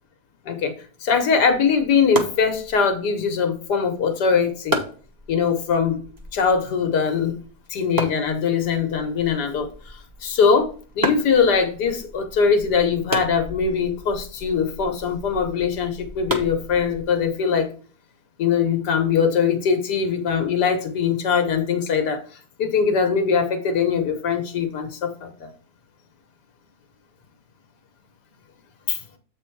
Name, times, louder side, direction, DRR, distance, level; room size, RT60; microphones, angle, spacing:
voice 1, 0.5-0.8 1.0-4.8 5.3-6.0 6.3-7.4 7.7-17.7 18.4-25.5 28.9-29.0, left 6 dB, 80° left, 6 dB, 1.7 m, -22 dB
sound 1, 1.4-17.3, right 1 dB, 15° right, 1.0 m, -34 dB
8.0 x 4.1 x 4.6 m, 0.41 s
omnidirectional pair, 1.7 m